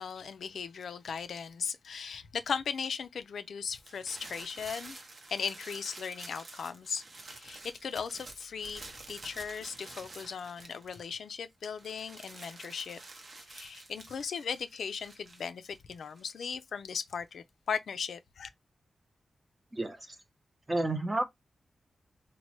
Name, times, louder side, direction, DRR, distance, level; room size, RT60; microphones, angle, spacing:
voice 1, 0.0-5.0 5.3-8.8 9.1-13.0 13.5-18.5, left 6 dB, 85° left, 0.3 m, -38 dB
sound 1, 3.7-11.3 11.6-16.4, right 2 dB, 55° right, 0.8 m, -49 dB
voice 2, 19.7-20.2 20.7-21.2, right 2 dB, 25° right, 0.7 m, -31 dB
3.0 x 2.1 x 2.9 m
cardioid pair, 75°, 0 cm